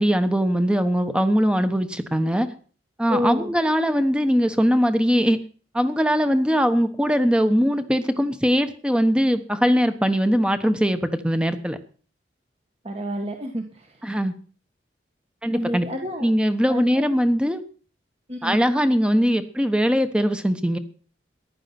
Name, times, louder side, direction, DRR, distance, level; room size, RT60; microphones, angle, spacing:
voice 1, 0.0-2.5 3.0-5.4 5.7-11.8 14.0-14.3 15.4-15.9 16.2-17.6 18.4-20.8, equal, 5° right, 9 dB, 1.1 m, -21 dB
voice 2, 3.1-3.5 12.8-13.9 15.5-16.3 16.7-17.1 18.3-18.6, equal, 35° right, 3 dB, 1.6 m, -29 dB
15.0 x 11.0 x 6.0 m, 0.42 s
head